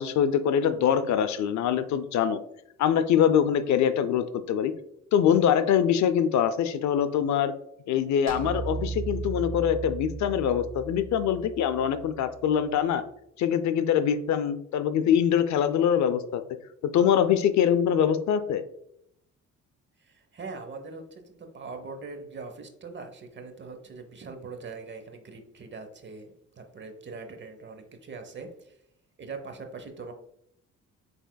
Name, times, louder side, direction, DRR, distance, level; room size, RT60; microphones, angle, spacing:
voice 1, 0.0-2.4 2.8-4.7 5.1-7.5 7.9-13.0 13.4-16.4 16.8-18.6, left 8 dB, 70° left, 11 dB, 0.5 m, -24 dB
sound 1, 8.3-12.7, right 5 dB, 60° right, 1.5 m, -36 dB
voice 2, 20.0-28.8 29.2-30.1, right 4 dB, 40° right, 6 dB, 0.8 m, -42 dB
6.0 x 3.4 x 2.3 m, 0.73 s
cardioid pair, 90°, 30 cm